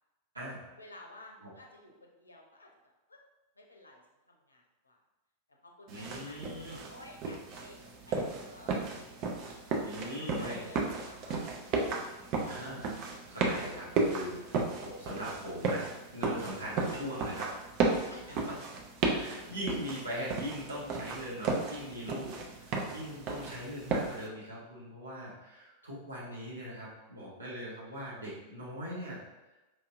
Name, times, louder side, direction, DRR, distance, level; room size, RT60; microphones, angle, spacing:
voice 1, 0.8-3.2 3.6-4.0 4.3-5.0 5.6-7.8 8.1-9.8 10.4-11.5 12.2-12.3 17.8-18.4, left 1 dB, 80° left, 0 dB, 0.6 m, -54 dB
sound 1, 5.9-24.3, right 3 dB, 40° right, 0.6 m, -34 dB
voice 2, 5.9-6.8 9.8-10.6 12.5-12.9 13.3-17.5 18.1-18.2 18.4-18.6 19.1-29.2, equal, 80° right, -7 dB, 1.2 m, -41 dB
4.6 x 2.7 x 2.4 m, 1.1 s
figure-of-eight pair, 90°, 0 cm